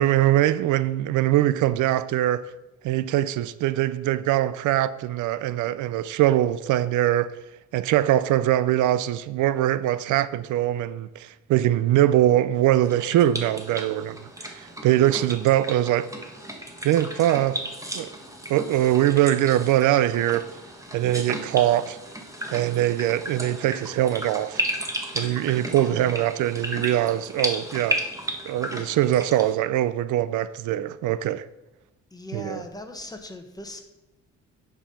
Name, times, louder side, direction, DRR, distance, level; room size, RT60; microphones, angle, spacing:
voice 1, 0.0-2.5 2.8-7.3 7.7-16.1 16.8-17.6 17.9-18.1 18.5-20.5 20.9-22.0 22.5-24.6 25.1-28.0 28.5-31.5 32.3-32.6, right 13 dB, 80° right, 0.5 m, -22 dB
sound 1, 12.8-29.5, right 1 dB, 10° right, 1.6 m, -34 dB
voice 2, 16.6-16.9 18.1-18.2 25.6-26.3 32.1-33.8, left 1 dB, 10° left, 1.3 m, -40 dB
9.7 x 5.5 x 5.7 m
cardioid pair, 90°, 30 cm